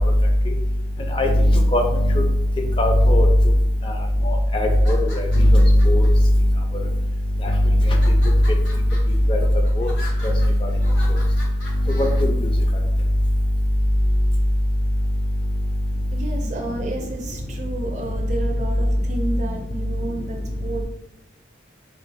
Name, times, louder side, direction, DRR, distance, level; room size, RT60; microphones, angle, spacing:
voice 1, 2.8-3.3 4.2-6.1 9.3-9.4 9.8-9.9 10.6-10.7 12.0-12.3, left 1 dB, 25° left, 3 dB, 0.3 m, -16 dB
sound 1, 4.7-6.1 6.8-7.3 7.8-12.2, left 2 dB, 85° left, 1.2 m, -41 dB
voice 2, 16.1-20.8, right 2 dB, 40° right, 2 dB, 0.5 m, -31 dB
3.1 x 2.3 x 4.0 m, 0.88 s
head